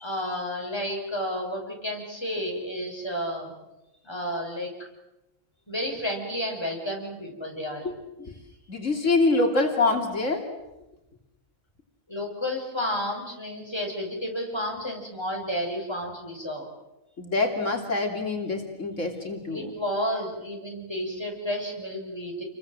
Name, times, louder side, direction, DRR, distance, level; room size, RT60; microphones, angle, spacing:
voice 1, 0.0-3.5 4.0-4.7 5.7-7.9 12.1-16.7 19.5-22.4, equal, 20° left, 0 dB, 6.6 m, -31 dB
voice 2, 7.8-8.3 8.7-10.5 17.2-19.7, left 3 dB, 65° left, 2 dB, 3.4 m, -25 dB
29.5 x 23.0 x 7.8 m, 0.97 s
omnidirectional pair, 1.4 m